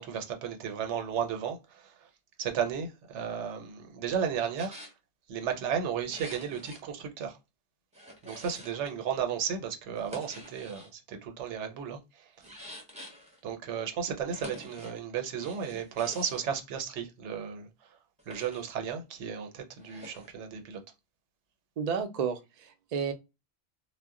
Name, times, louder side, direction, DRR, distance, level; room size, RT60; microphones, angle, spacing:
voice 1, 0.0-2.1 2.4-4.8 5.3-7.4 8.2-12.3 13.4-17.9 18.3-20.8, right 7 dB, 80° right, 0.9 m, -34 dB
sound 1, 4.6-4.9 6.0-6.8 7.9-9.0 9.9-10.9 12.4-13.4 14.3-15.0 15.3-16.5 18.2-18.7 19.8-20.3, equal, 5° right, 0.6 m, -47 dB
voice 2, 21.8-23.1, right 6 dB, 60° right, 0.4 m, -32 dB
2.1 x 2.1 x 3.5 m
omnidirectional pair, 1.2 m